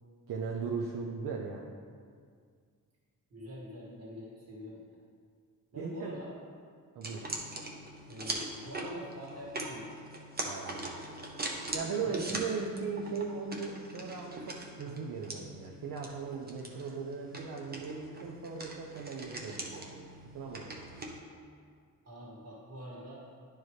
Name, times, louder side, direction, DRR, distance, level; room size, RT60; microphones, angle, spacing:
voice 1, 0.3-1.7 5.7-6.1 6.9-7.3 10.4-10.9 11.7-21.2, right 5 dB, 65° right, 0 dB, 0.6 m, -38 dB
voice 2, 3.3-4.9 5.7-6.3 8.1-10.0 12.0-12.3 14.8-15.0 22.0-23.2, equal, 45° right, -5 dB, 1.7 m, -45 dB
sound 1, 7.0-21.2, right 2 dB, 25° right, 0.7 m, -42 dB
11.0 x 4.6 x 3.2 m, 2.1 s
wide cardioid pair, 160°, 35 cm